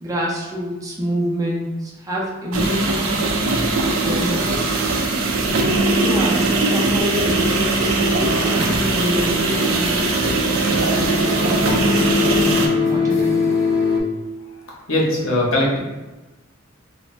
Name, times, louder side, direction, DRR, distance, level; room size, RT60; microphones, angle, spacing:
voice 1, 0.0-3.3 4.0-4.5 6.0-13.5, equal, 15° right, -4 dB, 0.6 m, -27 dB
sound 1, 2.5-12.7, right 3 dB, 75° right, 0.4 m, -20 dB
sound 2, 7.1-14.0, left 4 dB, 60° left, 0.4 m, -23 dB
voice 2, 14.7-15.8, left 1 dB, 75° left, -4 dB, 0.9 m, -20 dB
2.5 x 2.2 x 3.2 m, 1.1 s
head